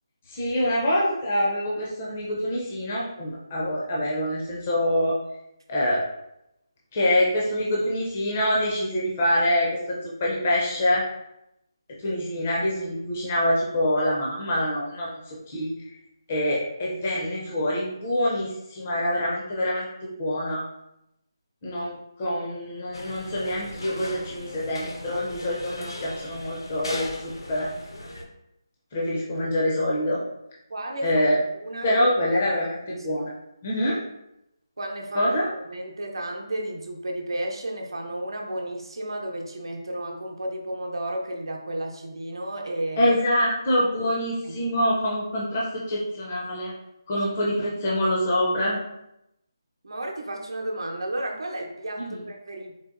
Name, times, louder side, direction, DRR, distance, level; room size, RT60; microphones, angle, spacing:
voice 1, 0.3-5.2 5.7-6.0 6.9-11.0 12.0-15.7 16.3-19.9 20.2-20.6 21.6-27.7 28.9-30.2 31.0-31.4 31.8-33.3 33.6-34.0 35.1-35.5 43.0-46.7 47.1-48.8 52.0-52.2, left 1 dB, 15° left, -5 dB, 0.4 m, -25 dB
sound 1, 22.9-28.2, left 1 dB, 90° left, 0.8 m, -38 dB
voice 2, 30.7-31.2 31.5-31.9 32.3-32.6 32.9-33.3 34.8-35.3 35.7-43.1 44.4-44.8 49.8-52.7, right 1 dB, 75° right, 1 dB, 0.7 m, -33 dB
3.9 x 2.8 x 2.5 m, 0.84 s
hypercardioid pair, 175°, 2 cm